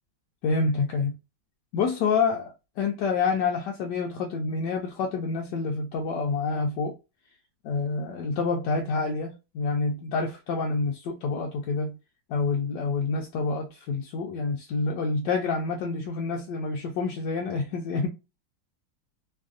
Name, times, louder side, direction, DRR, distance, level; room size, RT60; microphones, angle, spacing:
voice 1, 0.4-1.2 1.7-6.9 7.6-12.0 12.3-18.1, left 4 dB, 70° left, 1.1 m, -28 dB
3.3 x 2.5 x 2.3 m
omnidirectional pair, 2.2 m